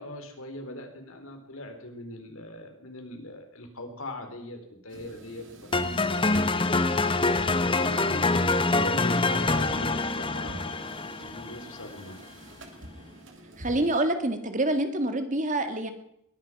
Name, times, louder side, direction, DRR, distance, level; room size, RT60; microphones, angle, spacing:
voice 1, 0.0-6.7 7.1-12.2, left 1 dB, 75° left, 5 dB, 3.6 m, -41 dB
sound 1, 4.9-14.0, right 1 dB, 60° right, 3.0 m, -47 dB
sound 2, 5.7-11.8, left 3 dB, 25° left, 0.9 m, -25 dB
voice 2, 13.6-15.9, right 1 dB, 35° right, 7 dB, 1.9 m, -26 dB
21.5 x 11.0 x 5.9 m, 0.77 s
head